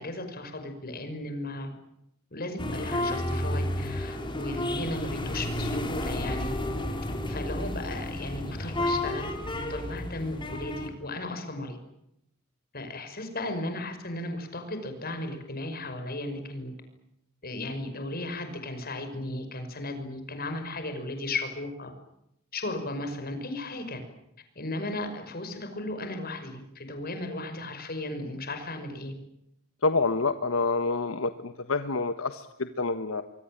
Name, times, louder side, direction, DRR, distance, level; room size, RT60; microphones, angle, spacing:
voice 1, 0.0-1.7 2.3-6.5 7.3-11.8 12.7-16.7 17.4-21.9 22.5-24.0 24.6-29.1, left 2 dB, 45° left, 7 dB, 5.8 m, -35 dB
sound 1, 2.6-10.9, left 1 dB, 25° left, 4.4 m, -31 dB
voice 2, 29.8-33.2, left 3 dB, 80° left, 9 dB, 1.3 m, -27 dB
26.0 x 24.0 x 9.0 m, 0.80 s
head